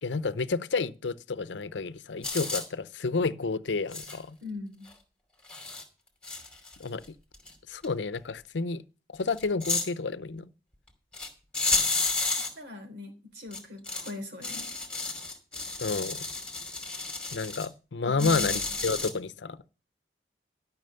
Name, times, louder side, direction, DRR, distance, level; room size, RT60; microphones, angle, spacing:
voice 1, 0.0-4.4 6.8-7.0 7.7-8.8 9.1-10.5 15.8-16.2 17.3-19.6, left 4 dB, 85° left, 0.6 m, -30 dB
sound 1, 2.2-2.6 3.9-4.2 4.9-5.0 5.5-5.8 6.2-7.0 7.3-7.5 7.8-7.9 9.3-9.9 11.1-11.3 11.5-12.5 13.5-14.1 14.4-17.7 18.2-19.1, left 3 dB, 5° left, 2.6 m, -31 dB
voice 2, 4.4-4.9 12.4-14.8 18.0-18.6 18.8-19.1, left 3 dB, 75° right, 3.6 m, -41 dB
12.5 x 6.0 x 6.8 m
head